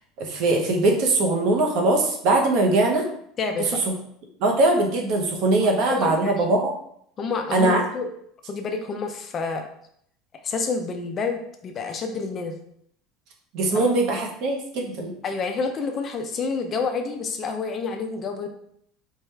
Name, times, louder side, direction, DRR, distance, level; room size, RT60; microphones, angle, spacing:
voice 1, 0.2-3.0 3.6-3.9 4.4-6.7 7.5-7.8 13.5-15.1, right 2 dB, 50° right, 2 dB, 0.7 m, -21 dB
voice 2, 3.4-3.8 5.6-6.5 7.2-8.1 8.5-9.7 10.4-12.5 13.7-13.8 15.2-18.5, left 4 dB, 25° left, 5 dB, 0.3 m, -29 dB
4.5 x 2.3 x 3.2 m, 0.69 s
cardioid pair, 170°, 0 cm